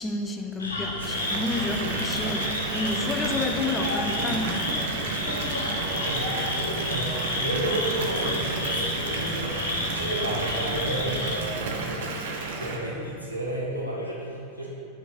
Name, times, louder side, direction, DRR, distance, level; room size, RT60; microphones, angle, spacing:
voice 1, 0.0-4.7, left 2 dB, 15° left, 3 dB, 0.5 m, -30 dB
sound 1, 0.6-11.4, left 2 dB, 70° left, 1.0 m, -31 dB
Water tap faucet / Bathtub (filling or washing) / Fill (with liquid), 1.0-12.8, right 3 dB, 55° right, 0.7 m, -32 dB
voice 2, 6.0-9.5 9.8-11.5 11.8-12.2 12.6-14.7, right 1 dB, 90° right, -5 dB, 1.3 m, -32 dB
5.5 x 4.3 x 5.5 m, 2.6 s
figure-of-eight pair, 90°, 0 cm